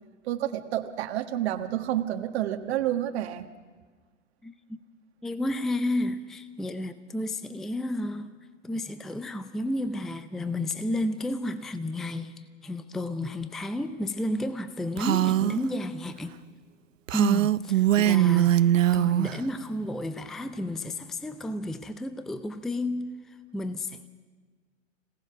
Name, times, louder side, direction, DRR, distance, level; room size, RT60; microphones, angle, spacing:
voice 1, 0.2-3.5, right 12 dB, 55° right, 1.5 m, -29 dB
voice 2, 5.2-8.3 8.6-12.3 12.6-16.3 17.1-23.1 23.5-24.1, left 1 dB, ahead, 0.5 m, -32 dB
Female speech woman speaking, 15.0-15.6 17.1-19.4, right 12 dB, 80° right, 0.6 m, -22 dB
26.0 x 18.0 x 6.1 m
hypercardioid pair, 120°, 38 cm